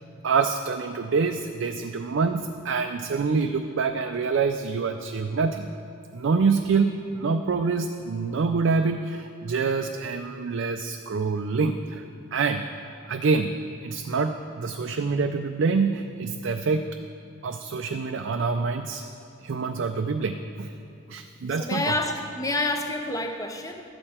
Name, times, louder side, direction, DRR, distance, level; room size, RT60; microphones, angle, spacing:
voice 1, 0.2-5.7 6.1-12.0 12.3-12.6 13.1-13.5 13.8-16.9 17.4-19.0 19.4-20.7 21.1-22.0, right 4 dB, 55° right, 6 dB, 0.4 m, -26 dB
voice 2, 21.6-23.8, left 2 dB, 15° left, 5 dB, 0.6 m, -28 dB
12.0 x 8.7 x 4.3 m, 2.7 s
head